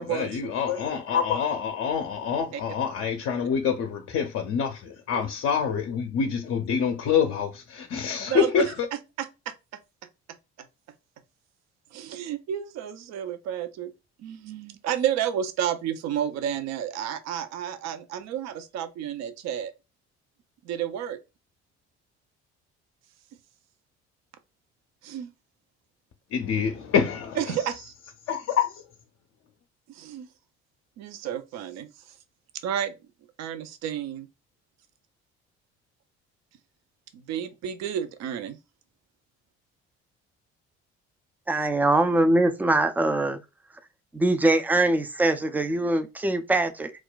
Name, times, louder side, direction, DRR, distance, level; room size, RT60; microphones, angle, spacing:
voice 1, 0.0-8.7 26.3-27.4 28.3-28.8, left 7 dB, 45° left, 0.6 m, -26 dB
voice 2, 8.3-8.7 9.2-9.5 11.9-13.9 14.2-19.7 20.6-21.2 25.0-25.3 27.4-27.9 29.9-30.3 31.0-31.9 32.6-32.9 33.4-34.3 37.1-38.6, right 9 dB, 55° right, 0.5 m, -31 dB
voice 3, 41.5-43.4 44.1-46.9, right 2 dB, 5° right, 0.4 m, -22 dB
2.4 x 2.1 x 3.8 m
hypercardioid pair, 50°, 33 cm